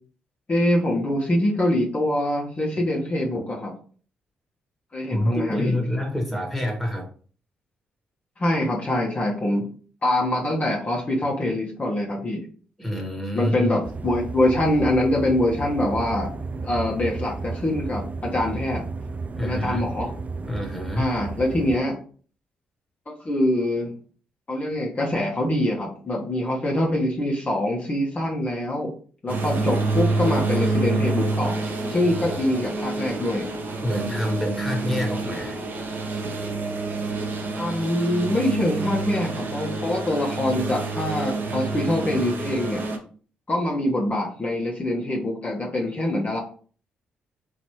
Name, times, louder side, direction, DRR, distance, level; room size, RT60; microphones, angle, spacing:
voice 1, 0.5-3.7 4.9-5.7 8.4-9.6 10.0-12.4 13.3-16.3 16.6-18.8 19.4-20.1 21.0-22.0 23.1-23.9 24.5-28.9 29.2-31.6 31.9-33.4 37.5-42.8 43.5-46.4, left 1 dB, 35° left, -2 dB, 1.3 m, -24 dB
voice 2, 5.1-7.1 12.8-13.7 19.4-19.8 20.4-21.1 32.0-32.4 33.8-35.6, left 1 dB, ahead, 0 dB, 1.6 m, -27 dB
sound 1, 13.8-21.8, right 4 dB, 35° right, 0.4 m, -33 dB
sound 2, 29.3-43.0, right 3 dB, 55° right, 1.1 m, -28 dB
4.0 x 3.1 x 3.1 m, 0.42 s
hypercardioid pair, 50°, 4 cm